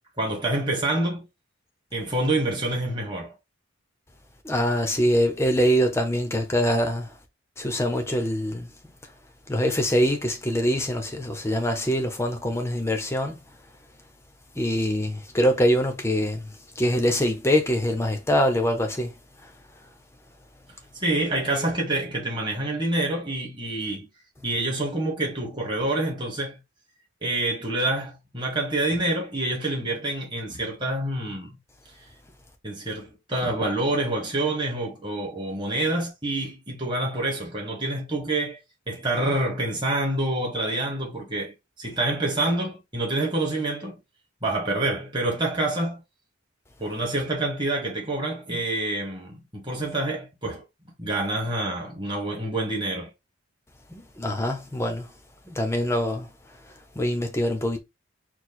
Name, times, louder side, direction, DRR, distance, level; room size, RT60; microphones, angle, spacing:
voice 1, 0.2-1.3 1.9-3.3 20.9-24.1 24.4-26.6 27.2-31.6 32.6-38.6 38.9-44.0 44.4-46.0 46.8-50.6 51.0-53.1, right 2 dB, 20° right, 1.6 m, -27 dB
voice 2, 4.4-7.2 7.6-8.7 9.5-13.4 14.5-19.1 19.4-19.5 53.9-55.1 55.4-56.3 56.7-57.8, equal, 15° left, 0.8 m, -24 dB
4.5 x 2.3 x 4.3 m
head